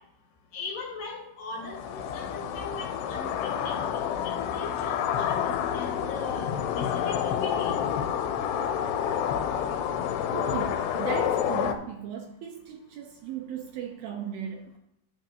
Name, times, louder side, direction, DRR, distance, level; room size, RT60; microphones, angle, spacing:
voice 1, 0.5-3.7 4.2-7.7, left 3 dB, 60° left, -2 dB, 2.7 m, -39 dB
sound 1, 1.6-11.7, left 9 dB, 90° left, 2.8 m, -29 dB
voice 2, 10.3-14.8, right 9 dB, 80° right, 3 dB, 2.3 m, -37 dB
11.5 x 7.5 x 2.7 m, 0.79 s
omnidirectional pair, 4.8 m